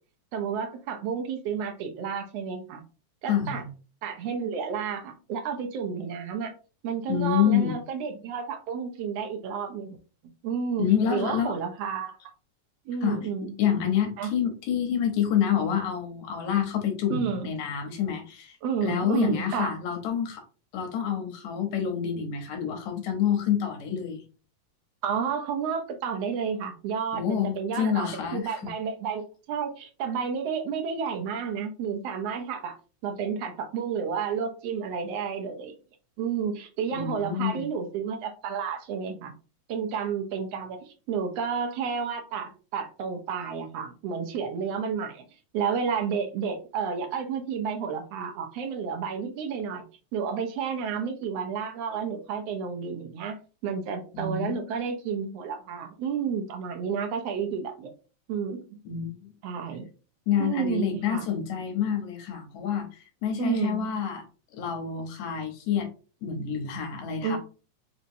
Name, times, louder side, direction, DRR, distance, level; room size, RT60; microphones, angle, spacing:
voice 1, 0.3-2.8 3.2-3.6 4.0-6.5 6.8-10.0 10.4-12.2 12.9-13.5 14.2-14.3 17.1-17.5 18.6-19.7 25.0-32.7 33.0-35.7 36.2-39.3 39.7-45.2 45.5-49.8 50.1-53.4 53.6-57.9 58.3-58.6 59.4-59.9 60.4-61.3 63.4-63.9 67.2-67.4, right 6 dB, 70° right, 4 dB, 1.6 m, -31 dB
voice 2, 3.3-3.6 7.1-7.8 10.8-11.6 13.0-13.3 13.6-18.5 18.8-20.4 20.7-24.2 27.1-28.6 36.9-37.7 54.1-54.6 58.9-59.3 60.3-64.2 64.5-65.9 66.2-67.4, left 8 dB, 75° left, 4 dB, 2.2 m, -28 dB
5.1 x 2.8 x 2.7 m, 0.35 s
omnidirectional pair, 3.4 m